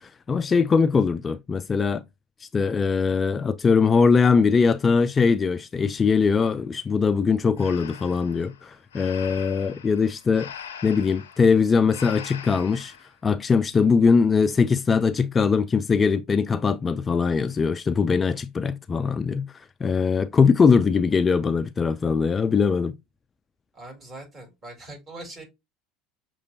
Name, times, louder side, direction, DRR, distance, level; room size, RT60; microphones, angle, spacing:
voice 1, 0.0-2.0 2.4-10.5 10.8-12.9 13.2-19.5 19.8-22.9, left 5 dB, 25° left, 0.3 m, -21 dB
Breathing, 7.6-13.1, left 7 dB, 75° left, 0.5 m, -42 dB
voice 2, 23.7-25.4, right 2 dB, 30° right, 3.1 m, -41 dB
6.5 x 3.1 x 2.6 m
figure-of-eight pair, 70°, 0 cm